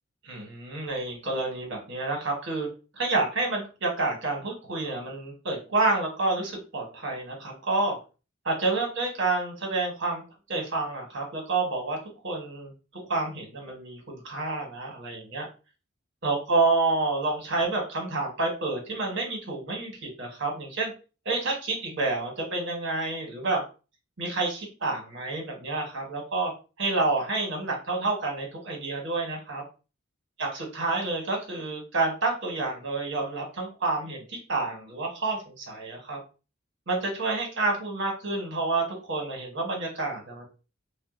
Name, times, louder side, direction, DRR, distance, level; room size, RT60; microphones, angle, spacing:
voice 1, 0.2-2.7 2.9-8.0 8.4-10.2 10.5-12.0 12.2-12.7 13.1-15.4 16.2-20.9 21.2-23.6 24.2-26.5 26.8-29.6 30.4-36.2 36.9-40.5, right 3 dB, 55° right, 0 dB, 1.1 m, -29 dB
3.3 x 2.5 x 2.4 m, 0.33 s
head